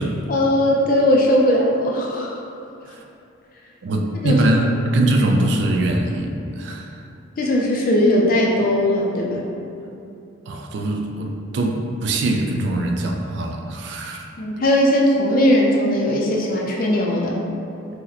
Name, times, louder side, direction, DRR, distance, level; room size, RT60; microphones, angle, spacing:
voice 1, 0.3-2.4 4.2-4.5 7.4-9.5 14.4-17.3, left 1 dB, 45° left, -2 dB, 0.4 m, -18 dB
voice 2, 3.8-6.9 10.5-14.2, right 1 dB, 60° right, 2 dB, 0.3 m, -22 dB
2.8 x 2.1 x 3.8 m, 2.6 s
head